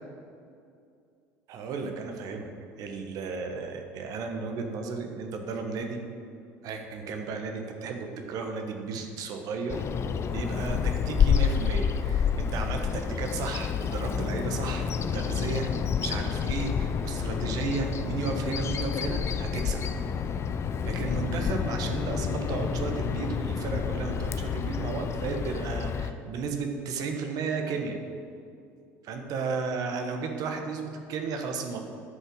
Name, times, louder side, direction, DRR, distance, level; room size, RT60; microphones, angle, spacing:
voice 1, 1.5-2.5 2.8-6.0 6.6-9.8 10.2-19.8 20.8-28.0 29.0-31.8, right 4 dB, 60° right, 4 dB, 1.2 m, -34 dB
Bird vocalization bird call bird song, 9.7-26.1, left 7 dB, 40° left, 0.5 m, -29 dB
10.0 x 5.5 x 6.3 m, 2.4 s
hypercardioid pair, 75°, 7 cm